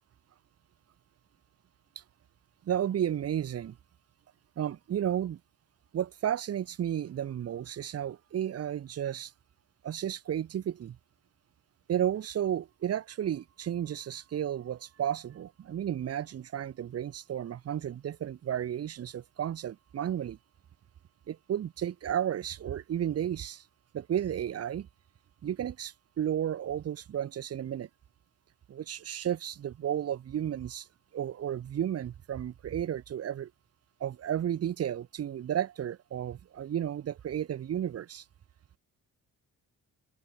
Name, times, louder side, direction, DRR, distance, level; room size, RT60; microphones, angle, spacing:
voice 1, 2.6-3.8 4.6-5.4 5.9-9.3 9.8-11.0 11.9-20.4 21.3-23.6 23.9-24.9 25.4-27.9 28.7-30.9 31.1-33.5 34.0-38.2, right 10 dB, 45° right, 0.7 m, -33 dB
open air
cardioid pair, 105°, 34 cm